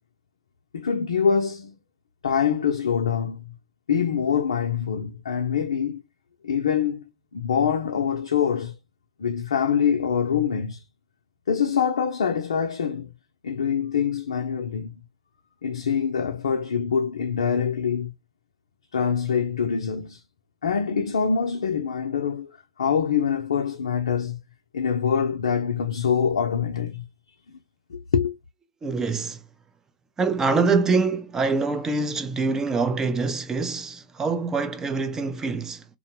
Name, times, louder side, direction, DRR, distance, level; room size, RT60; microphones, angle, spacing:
voice 1, 0.7-1.8 2.2-3.5 3.9-6.0 6.4-7.0 7.3-8.8 9.2-10.8 11.5-13.1 13.4-14.9 15.6-18.1 18.9-20.2 20.6-24.4 24.7-27.0 27.9-28.3, left 7 dB, 75° left, 0.4 m, -24 dB
voice 2, 28.8-29.4 30.2-35.9, right 4 dB, 15° right, 0.4 m, -25 dB
2.5 x 2.1 x 2.8 m
hypercardioid pair, 110°, 3 cm